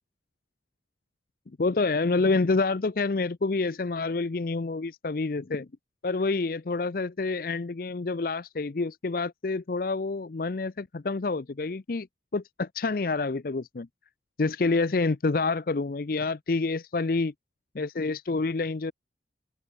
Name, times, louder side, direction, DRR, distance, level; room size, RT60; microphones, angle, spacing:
voice 1, 1.6-5.7 6.0-12.1 12.3-13.9 14.4-17.3 17.7-18.9, left 3 dB, 50° left, 0.5 m, -28 dB
open air
head